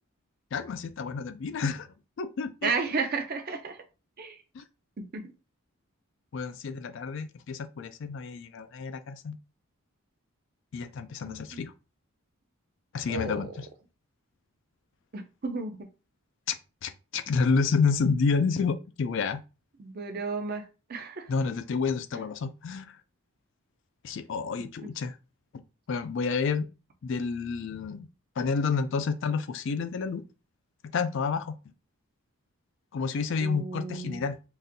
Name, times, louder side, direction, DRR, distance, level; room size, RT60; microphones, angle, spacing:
voice 1, 0.5-1.9 2.2-2.7 4.5-4.6 6.3-9.4 10.7-11.7 12.9-13.7 16.5-19.4 21.3-23.0 24.0-25.2 25.9-26.7 27.0-28.1 28.4-30.2 30.9-31.6 32.9-34.4, left 5 dB, 55° left, 0.3 m, -29 dB
voice 2, 2.6-3.8 4.2-4.4 5.0-5.2 11.2-11.7 13.1-13.5 15.1-15.9 19.8-20.6 20.9-21.3 33.4-34.2, right 4 dB, 45° right, 0.5 m, -33 dB
3.9 x 2.5 x 2.6 m
head